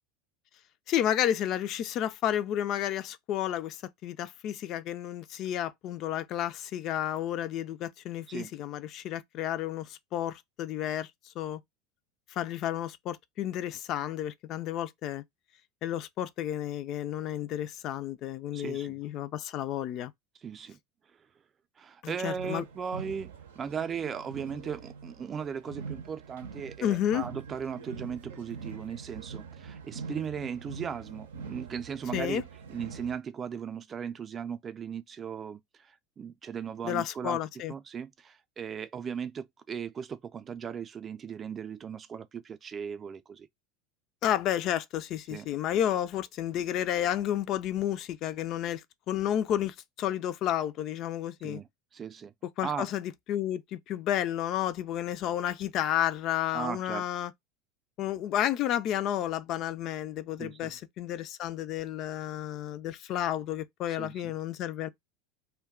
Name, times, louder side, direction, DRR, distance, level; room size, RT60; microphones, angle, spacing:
voice 1, 0.9-11.6 12.3-15.2 15.8-20.1 22.0-22.6 26.8-27.3 32.1-32.4 36.8-37.7 44.2-51.6 52.6-57.3 58.0-64.9, left 11 dB, 50° left, 0.4 m, -31 dB
voice 2, 18.5-18.9 20.4-20.8 21.8-32.4 32.7-35.6 36.2-37.4 37.7-43.5 45.3-45.5 51.4-51.7 51.9-52.3 52.6-52.9 56.5-57.0 60.4-60.7 63.9-64.1, right 7 dB, 30° right, 0.4 m, -37 dB
sound 1, 22.3-33.1, right 5 dB, 85° right, 0.6 m, -44 dB
2.2 x 2.2 x 3.5 m
hypercardioid pair, 90°, 0 cm